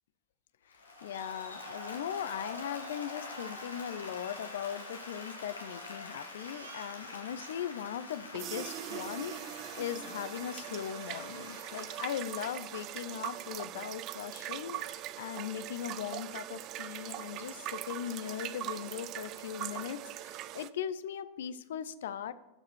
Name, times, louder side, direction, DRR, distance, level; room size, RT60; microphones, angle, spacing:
Applause, 0.7-13.9, left 2 dB, 75° left, 1.4 m, -46 dB
voice 1, 1.0-22.3, left 9 dB, 60° left, 15 dB, 0.4 m, -39 dB
Crying sobbing, 6.4-7.5 7.9-8.0 8.3-8.6 10.5-10.6 11.0-11.8 12.2-12.3 12.7-12.8 13.1-13.8, right 6 dB, 65° right, 0.9 m, -56 dB
sound 1, 8.3-20.7, right 13 dB, 35° right, 0.3 m, -41 dB
12.5 x 4.8 x 4.5 m, 0.94 s
figure-of-eight pair, 90°, 0 cm